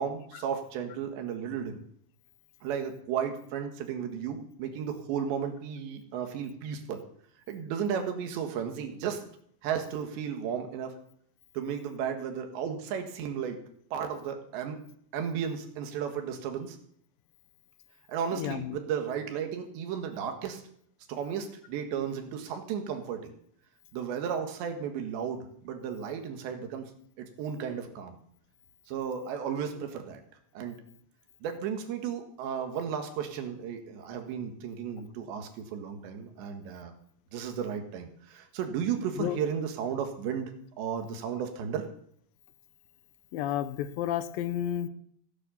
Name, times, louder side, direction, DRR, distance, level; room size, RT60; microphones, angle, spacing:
voice 1, 0.0-1.8 2.6-7.0 7.5-9.2 9.6-11.0 11.6-13.6 13.9-14.8 15.1-16.8 18.1-20.6 21.1-23.4 23.9-26.9 27.2-28.2 28.9-30.2 30.6-30.8 31.4-36.9 37.3-40.5 40.8-41.9, right 7 dB, 85° right, 6 dB, 3.9 m, -34 dB
voice 2, 18.4-18.7 39.2-39.4 43.3-44.9, left 11 dB, 80° left, 11 dB, 2.1 m, -31 dB
15.5 x 9.7 x 7.1 m, 0.64 s
omnidirectional pair, 5.0 m